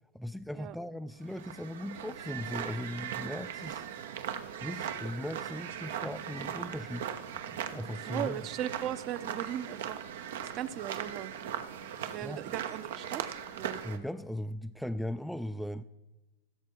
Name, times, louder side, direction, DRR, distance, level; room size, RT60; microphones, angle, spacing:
voice 1, 0.1-3.9 4.6-7.1 7.5-8.4 12.2-12.4 13.8-15.8, left 1 dB, ahead, 0.3 m, -38 dB
sound 1, 1.2-14.0, right 9 dB, 75° right, 0.9 m, -39 dB
voice 2, 8.1-10.0 10.5-11.4 12.0-13.2 13.5-13.8, right 11 dB, 40° right, 0.7 m, -37 dB
15.5 x 6.9 x 4.6 m
hypercardioid pair, 125°, 0 cm